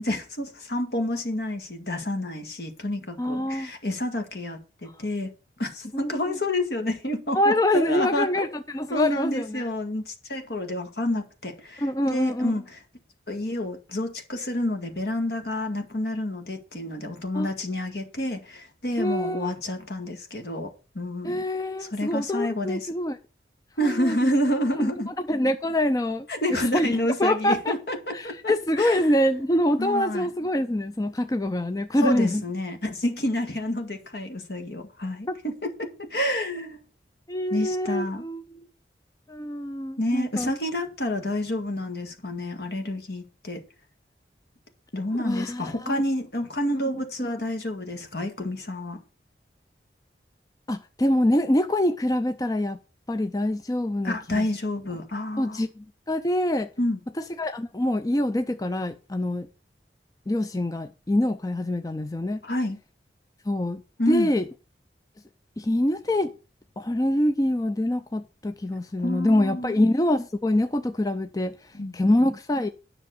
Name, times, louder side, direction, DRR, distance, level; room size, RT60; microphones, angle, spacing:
voice 1, 0.0-5.3 5.6-8.5 8.9-12.8 13.3-21.4 21.8-22.9 23.8-25.1 26.3-29.0 29.8-30.3 32.0-36.8 37.5-38.3 40.0-43.6 44.9-49.0 54.0-55.6 56.8-57.0 62.4-62.8 64.0-64.3 69.0-69.7 71.7-72.3, left 1 dB, 65° left, 2.0 m, -29 dB
voice 2, 3.2-3.7 5.9-6.1 7.3-9.7 11.8-12.5 17.3-17.5 19.0-19.5 21.2-23.2 23.8-24.3 24.8-24.9 25.3-26.9 27.2-27.7 28.1-32.4 35.3-35.4 37.3-38.7 39.3-40.5 45.2-46.0 47.2-47.3 50.7-52.8 53.1-54.5 55.4-56.7 57.2-59.5 60.3-62.4 63.5-63.8 64.1-64.5 65.6-66.3 66.8-71.6 71.9-72.7, left 1 dB, 20° left, 0.5 m, -25 dB
10.5 x 6.3 x 6.6 m
head